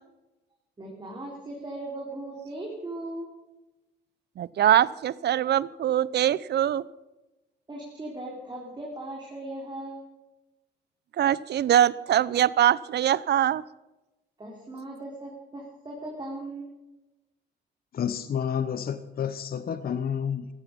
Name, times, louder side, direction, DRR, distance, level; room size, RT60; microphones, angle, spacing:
voice 1, 0.8-3.3 7.7-10.1 14.4-16.7, right 1 dB, 20° right, -2 dB, 3.8 m, -38 dB
voice 2, 4.4-6.8 11.2-13.6, right 11 dB, 60° right, 21 dB, 0.6 m, -23 dB
voice 3, 17.9-20.5, left 8 dB, 50° left, 12 dB, 0.9 m, -30 dB
15.0 x 14.0 x 5.3 m, 1.0 s
cardioid pair, 90°, 20 cm